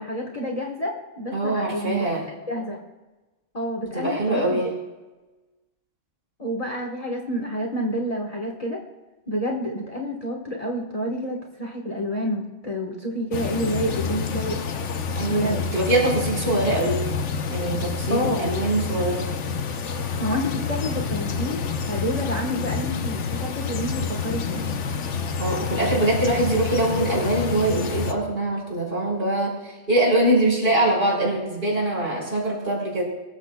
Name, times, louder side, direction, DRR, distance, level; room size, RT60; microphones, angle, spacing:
voice 1, 0.0-2.1 2.5-2.8 3.5-4.6 6.4-8.8 9.3-14.6 15.3-15.6 18.1-18.5 20.2-21.6 21.9-24.6, equal, 30° left, 0 dB, 1.4 m, -28 dB
voice 2, 1.3-2.2 3.9-4.7 15.1-17.0 17.5-19.3 25.4-33.0, right 1 dB, 45° right, -2 dB, 5.3 m, -23 dB
sound 1, 13.3-28.1, left 5 dB, 75° left, 1.2 m, -28 dB
22.5 x 14.0 x 2.3 m, 1.1 s
omnidirectional pair, 1.3 m